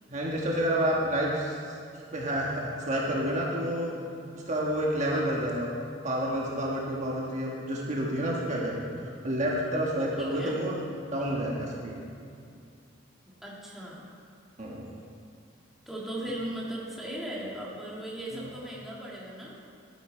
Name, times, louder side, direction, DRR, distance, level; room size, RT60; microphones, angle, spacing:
voice 1, 0.1-1.7 2.1-4.0 4.5-5.7 6.0-10.8 11.1-12.0 14.6-14.8 18.3-18.5, right 1 dB, 40° right, -3 dB, 1.4 m, -29 dB
voice 2, 10.2-10.6 13.4-14.1 15.9-19.5, right 1 dB, ahead, -6 dB, 1.8 m, -37 dB
12.0 x 9.8 x 4.4 m, 2.4 s
head